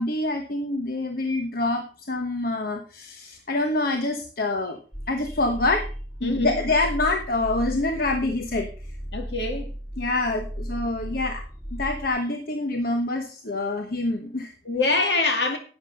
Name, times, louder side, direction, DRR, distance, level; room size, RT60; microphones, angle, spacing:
voice 1, 0.0-4.8 5.1-5.9 6.2-8.7 10.0-11.4 11.7-14.5, left 2 dB, 55° left, 1.1 m, -26 dB
sound 1, 4.9-12.1, equal, 5° left, 2.2 m, -35 dB
voice 2, 6.2-6.6 9.1-9.7 14.6-15.6, left 3 dB, 70° left, 2.4 m, -24 dB
11.0 x 8.2 x 5.4 m
head